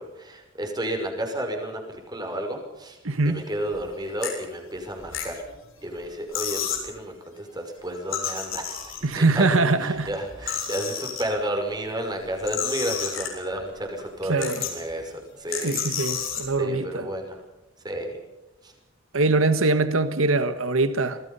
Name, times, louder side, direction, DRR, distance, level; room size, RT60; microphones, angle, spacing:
voice 1, 0.0-3.0 3.3-5.4 5.8-8.8 9.1-15.7 16.1-16.3 16.6-17.4 17.8-18.2 18.6-18.7, right 1 dB, 20° right, 3 dB, 5.7 m, -31 dB
voice 2, 3.0-3.5 9.0-10.1 14.2-14.6 15.6-17.1 19.1-21.3, right 3 dB, 90° right, 11 dB, 1.5 m, -23 dB
sound 1, 3.6-3.8 4.2-4.3 4.9-5.7 6.0-6.1 6.3-6.9 7.9-9.2 9.9-11.2 12.2-13.6 14.0-14.1 14.4-14.9 15.5-16.5, left 8 dB, 80° left, 7.3 m, -31 dB
27.0 x 19.5 x 5.6 m, 0.97 s
head